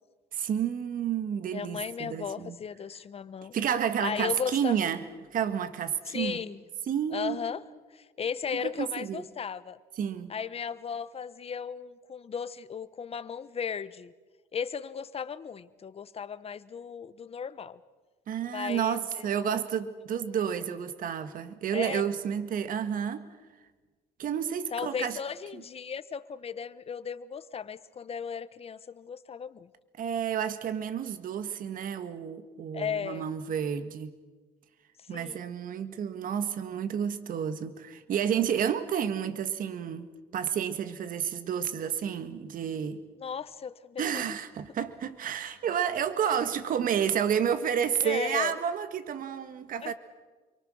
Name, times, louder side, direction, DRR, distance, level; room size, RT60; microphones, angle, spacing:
voice 1, 0.3-2.6 3.5-5.0 5.3-6.4 6.9-7.4 8.6-9.2 10.0-10.3 18.3-23.3 24.2-25.2 30.0-34.1 35.1-40.1 40.3-43.0 44.0-49.9, right 8 dB, 55° right, 1.7 m, -30 dB
voice 2, 1.5-3.5 4.0-4.8 6.1-6.6 7.1-7.6 7.9-9.8 10.3-14.1 14.5-17.8 18.5-19.5 21.7-22.0 24.7-29.7 32.7-33.3 35.1-35.5 43.2-44.3 46.2-46.4 48.0-48.6 49.8-49.9, left 7 dB, 35° left, 1.1 m, -36 dB
29.0 x 23.5 x 6.4 m
cardioid pair, 110°, 17 cm